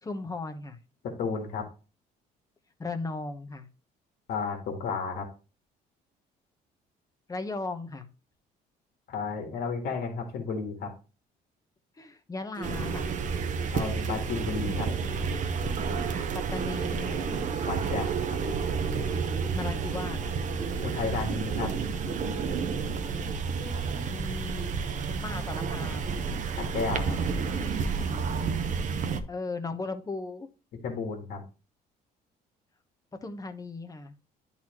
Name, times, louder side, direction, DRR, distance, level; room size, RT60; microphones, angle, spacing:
voice 1, 0.0-0.8 2.8-3.7 7.3-8.1 12.0-13.1 15.9-17.3 19.5-20.4 24.1-26.1 29.3-30.5 33.2-34.1, left 3 dB, 20° left, 8 dB, 1.0 m, -37 dB
voice 2, 1.2-1.7 4.3-5.3 9.1-10.9 13.7-14.9 17.7-18.2 20.8-21.7 26.7-27.2 30.8-31.4, left 5 dB, 65° left, 3 dB, 1.8 m, -32 dB
sound 1, 12.5-16.2 16.5-20.2 20.5-24.2 24.5-28.2, right 3 dB, 30° right, 1.1 m, -45 dB
sound 2, 12.6-29.2, right 5 dB, 50° right, 0.9 m, -30 dB
10.5 x 4.1 x 3.0 m, 0.33 s
cardioid pair, 110°, 17 cm